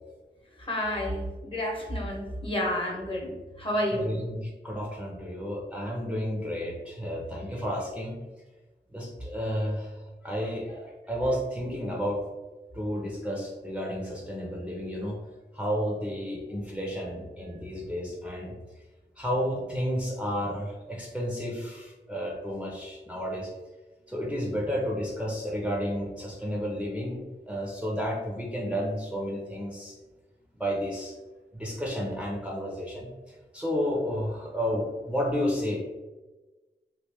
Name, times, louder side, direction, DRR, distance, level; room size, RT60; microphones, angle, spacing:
voice 1, 0.6-4.1, left 1 dB, 30° left, -2 dB, 1.1 m, -30 dB
voice 2, 3.9-8.2 8.9-12.2 12.7-15.2 15.5-18.6 19.2-23.5 24.1-30.0 30.6-31.2 31.5-35.8, equal, 5° right, -3 dB, 0.7 m, -31 dB
3.1 x 2.4 x 3.5 m, 1.2 s
cardioid pair, 50°, 18 cm